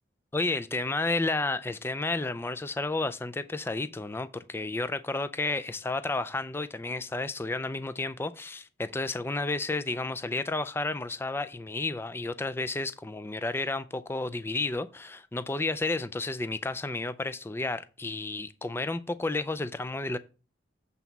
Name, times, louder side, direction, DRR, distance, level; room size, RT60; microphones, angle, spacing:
voice 1, 0.3-20.2, left 2 dB, 10° left, 0.3 m, -31 dB
7.9 x 4.0 x 5.8 m
head